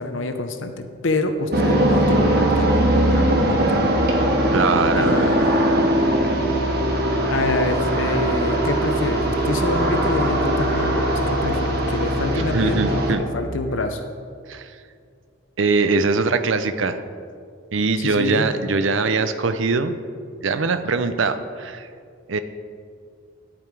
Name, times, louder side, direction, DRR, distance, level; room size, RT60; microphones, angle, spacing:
voice 1, 0.0-3.9 4.9-5.5 7.3-14.0 18.0-18.5, left 2 dB, 65° left, 7 dB, 0.7 m, -27 dB
sound 1, 1.5-13.1, right 1 dB, 50° right, 1.3 m, -20 dB
voice 2, 4.5-5.3 12.5-13.2 14.5-14.7 15.6-17.0 17.7-19.9 20.4-21.9 22.3-22.4, right 4 dB, 65° right, 10 dB, 0.6 m, -22 dB
10.5 x 8.7 x 4.7 m, 2.3 s
head